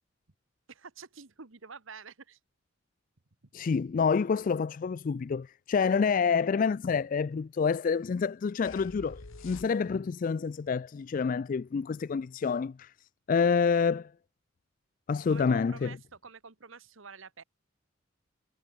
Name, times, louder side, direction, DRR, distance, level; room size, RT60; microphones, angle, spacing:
voice 1, 0.7-2.4 3.5-3.7 15.3-16.0 16.2-17.4, right 5 dB, 75° right, 1.4 m, -48 dB
voice 2, 3.5-12.9 13.3-14.1 15.1-16.0, left 5 dB, 40° left, 0.3 m, -28 dB
sound 1, 8.7-10.2, left 3 dB, 75° left, 1.3 m, -47 dB
head